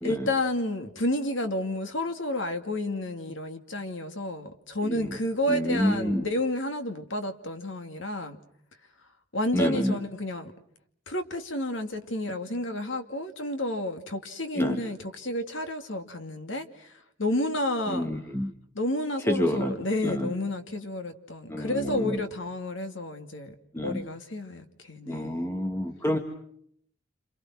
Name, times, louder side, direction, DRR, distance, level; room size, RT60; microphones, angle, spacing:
voice 1, 0.0-8.4 9.3-10.5 11.1-18.1 18.7-23.5 23.8-25.5, left 1 dB, 65° left, 6 dB, 2.6 m, -31 dB
voice 2, 4.8-5.2 5.5-6.3 9.5-10.0 14.5-14.8 17.9-18.5 19.2-19.8 20.0-20.3 21.5-22.2 23.7-24.0 25.1-26.2, equal, 10° left, 4 dB, 1.7 m, -28 dB
29.0 x 28.0 x 6.2 m, 0.70 s
head